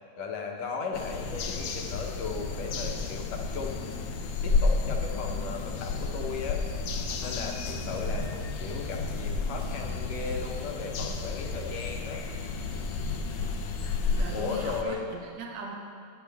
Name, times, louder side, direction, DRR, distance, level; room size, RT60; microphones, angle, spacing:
voice 1, 0.2-3.9 4.4-6.6 7.2-12.2 14.3-15.1, left 4 dB, 65° left, 1 dB, 2.2 m, -36 dB
sound 1, 0.9-14.8, left 4 dB, 90° left, 2.3 m, -31 dB
sound 2, 6.4-13.9, left 2 dB, 30° right, 3.1 m, -44 dB
voice 2, 14.2-15.8, right 3 dB, 65° right, -1 dB, 2.4 m, -39 dB
19.5 x 9.4 x 3.5 m, 2.4 s
omnidirectional pair, 3.4 m